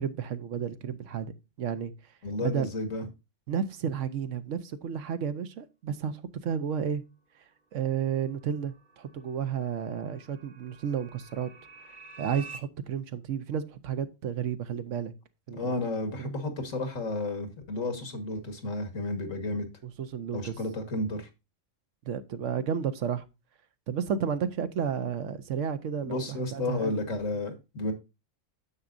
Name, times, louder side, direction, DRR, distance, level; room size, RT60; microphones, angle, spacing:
voice 1, 0.0-1.3 1.6-1.9 2.4-2.7 3.5-7.0 7.7-11.5 12.2-15.1 15.5-15.7 16.2-16.3 19.8-20.5 22.0-23.2 23.9-27.0, right 8 dB, 75° right, 1.1 m, -32 dB
voice 2, 2.2-3.0 15.5-19.7 20.3-21.3 26.0-27.9, left 2 dB, 85° left, 1.9 m, -32 dB
sound 1, 8.3-12.6, right 4 dB, 40° right, 1.0 m, -49 dB
9.7 x 7.1 x 2.5 m
omnidirectional pair, 1.3 m